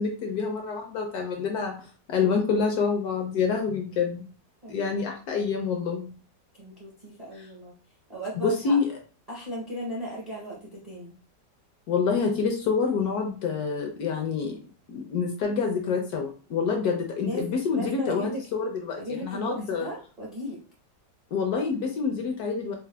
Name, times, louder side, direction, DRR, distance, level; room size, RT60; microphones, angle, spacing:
voice 1, 0.0-1.8 2.1-4.2 4.7-6.1 8.3-8.9 11.9-14.6 14.9-19.9 21.3-22.7, left 5 dB, 70° left, 2 dB, 1.0 m, -27 dB
voice 2, 4.6-4.9 6.6-7.7 8.1-8.8 9.3-11.1 17.2-18.4 19.0-20.6, equal, 45° right, -5 dB, 0.5 m, -36 dB
4.3 x 2.1 x 2.2 m, 0.38 s
omnidirectional pair, 1.9 m